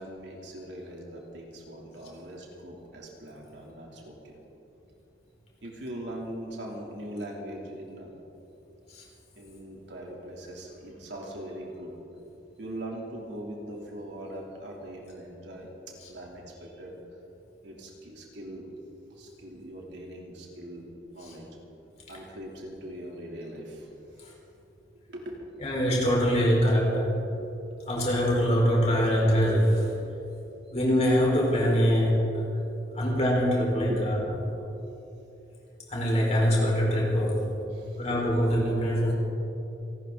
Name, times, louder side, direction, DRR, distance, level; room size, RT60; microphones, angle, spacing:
voice 1, 0.0-4.4 5.6-8.1 9.3-11.9 12.6-15.7 16.1-17.0 17.6-18.7 19.1-21.5 22.1-23.9 25.1-25.5 27.7-27.8 30.3-30.4 32.9-33.0 33.8-34.0 37.7-38.1, right 1 dB, 70° right, -2 dB, 3.2 m, -41 dB
voice 2, 25.6-27.1 27.9-29.9 30.7-32.4 32.9-34.1 35.9-37.5 38.0-39.1, equal, 35° left, -3 dB, 4.5 m, -24 dB
28.5 x 13.0 x 3.9 m, 3.0 s
head